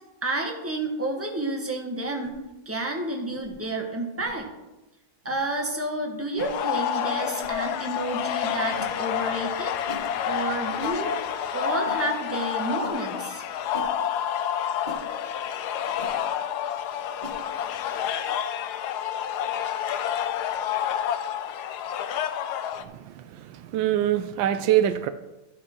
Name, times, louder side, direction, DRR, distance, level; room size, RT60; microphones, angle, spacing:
voice 1, 0.2-2.4 2.6-4.5 5.2-9.7 10.2-11.1 11.5-13.4, right 2 dB, 10° right, 1 dB, 1.0 m, -30 dB
sound 1, 2.2-2.4 3.3-3.5 4.2-4.3 5.2-5.4 6.3-6.5 7.4-7.6 8.8-9.0 9.9-10.1 10.8-11.0 11.8-12.0 12.8-13.0 13.7-13.9 14.8-15.0 16.0-16.1 17.2-17.4, right 1 dB, 30° right, 1.2 m, -40 dB
sound 2, 6.4-22.8, left 9 dB, 70° left, 1.0 m, -29 dB
voice 2, 22.8-25.1, right 11 dB, 85° right, 11 dB, 1.3 m, -25 dB
12.0 x 6.0 x 4.5 m, 1.0 s
omnidirectional pair, 2.0 m